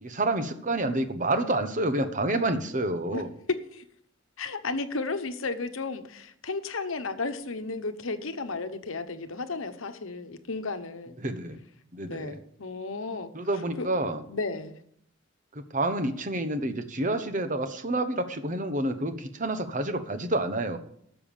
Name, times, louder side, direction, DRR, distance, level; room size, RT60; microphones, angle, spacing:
voice 1, 0.0-3.3 11.2-11.6 11.9-12.4 13.3-14.2 15.5-20.8, right 1 dB, 40° right, 9 dB, 1.2 m, -28 dB
voice 2, 4.4-11.2 12.1-13.3 13.8-13.9 14.3-14.8, left 3 dB, 80° left, 9 dB, 1.1 m, -33 dB
12.5 x 7.1 x 7.1 m, 0.68 s
head